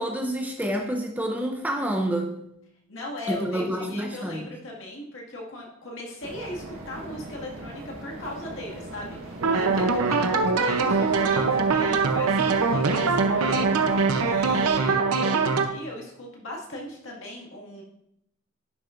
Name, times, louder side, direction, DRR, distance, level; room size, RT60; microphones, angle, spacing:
voice 1, 0.0-2.3 3.3-4.5, right 1 dB, 5° right, 2 dB, 0.5 m, -28 dB
voice 2, 2.9-13.8 14.2-17.8, left 1 dB, 60° left, -2 dB, 2.0 m, -38 dB
sound 1, 6.2-14.9, right 1 dB, 65° right, 1.5 m, -40 dB
sound 2, 9.4-15.7, right 4 dB, 90° right, 0.7 m, -22 dB
11.0 x 6.2 x 2.5 m, 0.79 s
head